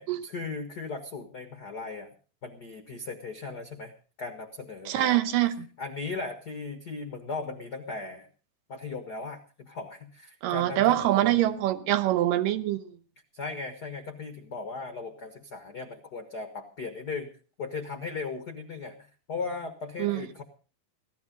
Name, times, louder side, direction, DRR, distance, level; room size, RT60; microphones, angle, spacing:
voice 1, 0.0-2.1 2.4-3.9 4.2-5.2 5.8-8.3 8.7-11.6 13.3-17.3 17.6-20.4, left 4 dB, 60° left, 1.0 m, -37 dB
voice 2, 4.9-5.7 10.4-12.9 20.0-20.2, right 14 dB, 75° right, 2.4 m, -24 dB
17.5 x 13.0 x 5.2 m
omnidirectional pair, 4.2 m